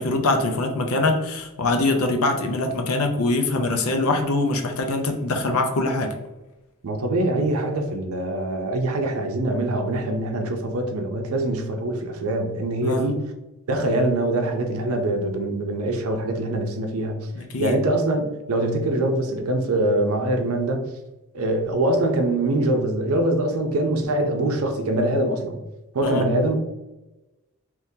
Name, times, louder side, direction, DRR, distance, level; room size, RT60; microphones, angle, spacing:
voice 1, 0.0-6.1 12.8-13.1 17.3-17.8 26.0-26.2, left 2 dB, 75° left, 4 dB, 0.6 m, -23 dB
voice 2, 6.8-13.2 13.7-17.2 17.6-20.9 21.3-25.6 25.9-26.6, right 1 dB, 75° right, 4 dB, 0.6 m, -23 dB
3.6 x 3.0 x 2.7 m, 1.0 s
head